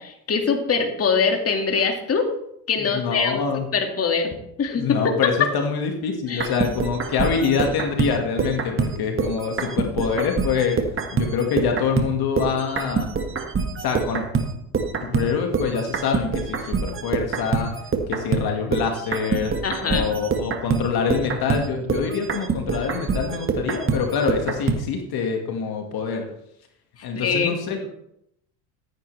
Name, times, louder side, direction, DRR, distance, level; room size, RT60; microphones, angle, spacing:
voice 1, 0.0-2.3 2.7-3.5 3.7-5.5 6.3-6.5 19.6-20.2 27.0-27.6, left 5 dB, 30° left, 4 dB, 2.1 m, -23 dB
voice 2, 2.9-3.6 4.7-10.8 11.1-13.1 13.8-14.3 15.0-17.7 18.1-19.5 19.9-26.3 27.0-27.9, left 6 dB, 50° left, 3 dB, 2.0 m, -25 dB
sound 1, 6.3-12.1 12.4-24.8, right 5 dB, 25° right, 1.7 m, -25 dB
14.0 x 9.8 x 3.3 m, 0.77 s
hypercardioid pair, 85°, 46 cm